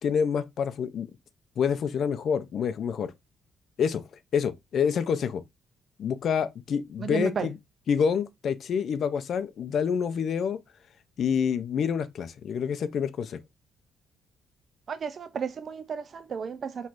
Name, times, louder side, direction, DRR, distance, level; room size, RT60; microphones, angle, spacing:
voice 1, 0.0-1.1 1.6-3.1 3.8-4.0 4.3-5.4 6.0-7.5 7.9-10.6 11.2-13.4, left 7 dB, 50° left, 0.5 m, -27 dB
voice 2, 7.0-7.5 14.9-16.9, right 6 dB, 35° right, 0.3 m, -33 dB
5.9 x 3.1 x 2.5 m
cardioid pair, 160°, 0 cm